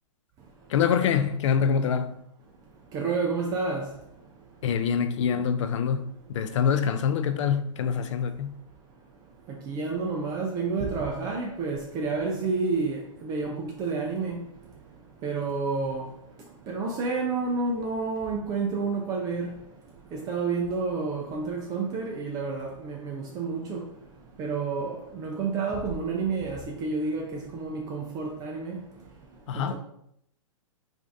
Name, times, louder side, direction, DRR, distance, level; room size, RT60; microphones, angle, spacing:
voice 1, 0.7-2.1 4.6-6.1 6.3-8.6 29.5-29.7, left 7 dB, 65° left, 0.4 m, -25 dB
voice 2, 2.9-3.9 9.5-14.4 15.2-16.1 16.7-19.6 20.1-23.8 24.4-28.8 29.5-29.7, right 4 dB, 20° right, 0.3 m, -30 dB
4.3 x 2.5 x 2.6 m
hypercardioid pair, 140°, 17 cm